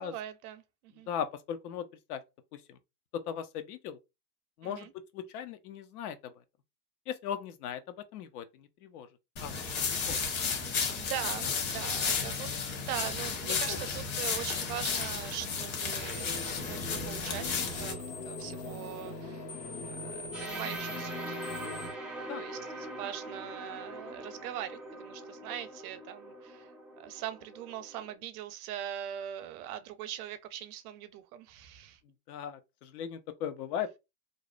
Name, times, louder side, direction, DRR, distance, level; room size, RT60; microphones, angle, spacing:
voice 1, 0.0-1.1 4.6-4.9 10.5-19.5 19.8-21.4 22.3-32.0, right 11 dB, 65° right, 0.6 m, -41 dB
voice 2, 0.9-2.2 2.5-2.8 3.3-4.0 4.6-6.3 7.1-9.1 9.4-10.2 13.5-13.8 22.2-22.4 32.3-34.0, left 9 dB, 70° left, 0.7 m, -39 dB
sound 1, 9.4-17.9, left 5 dB, 45° left, 1.1 m, -33 dB
sound 2, 16.1-21.9, left 2 dB, 90° left, 1.3 m, -41 dB
sound 3, 20.3-28.1, right 1 dB, ahead, 0.4 m, -43 dB
2.6 x 2.1 x 2.5 m
hypercardioid pair, 105°, 47 cm